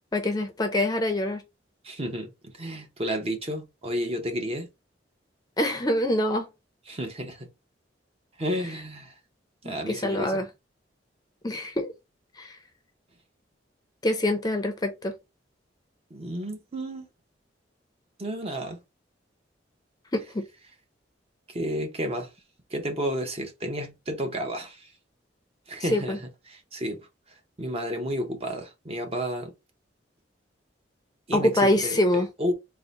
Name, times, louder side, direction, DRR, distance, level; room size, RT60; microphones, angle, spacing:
voice 1, 0.1-1.4 5.6-6.5 9.6-10.5 11.4-11.9 12.4-12.6 14.0-15.1 20.1-20.5 25.9-26.2 31.3-32.3, left 1 dB, 20° left, 0.5 m, -25 dB
voice 2, 1.8-4.7 6.9-7.5 8.4-9.2 9.6-10.4 16.1-17.1 18.2-18.8 21.5-22.3 22.7-24.9 25.7-27.1 27.6-29.5 31.3-32.0 32.4-32.5, equal, 35° right, 0.8 m, -31 dB
3.6 x 2.0 x 4.0 m
head